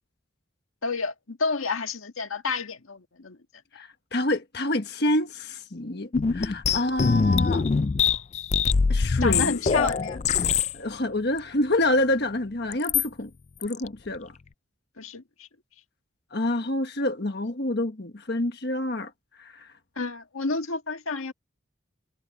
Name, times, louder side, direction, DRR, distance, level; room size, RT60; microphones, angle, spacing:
voice 1, 0.8-3.4 9.2-10.2 15.0-15.5 19.9-21.3, left 4 dB, 80° left, 1.7 m, -30 dB
voice 2, 3.7-7.7 8.9-9.5 9.8-9.9 10.7-13.3 13.6-14.3 16.3-19.1 19.4-19.7, left 1 dB, 50° left, 1.4 m, -27 dB
sound 1, 6.1-10.7 11.4-11.5 12.7-13.1 13.6-13.9, left 5 dB, 35° left, 0.3 m, -23 dB
head